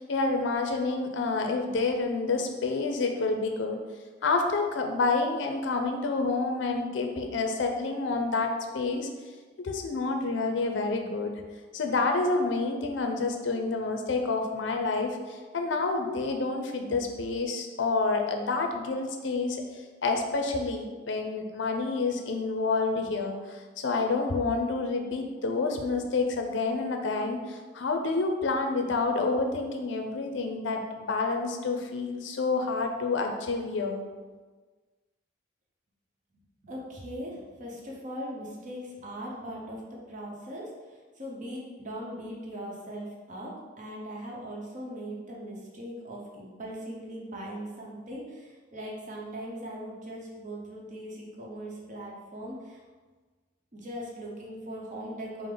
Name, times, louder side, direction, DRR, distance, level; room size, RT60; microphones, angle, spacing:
voice 1, 0.0-3.8 4.2-9.1 9.6-11.4 11.7-19.6 20.0-34.0, left 3 dB, 70° left, 4 dB, 0.5 m, -28 dB
voice 2, 36.3-52.8 53.7-55.5, equal, 45° right, -3 dB, 0.8 m, -40 dB
5.0 x 2.1 x 3.7 m, 1.4 s
head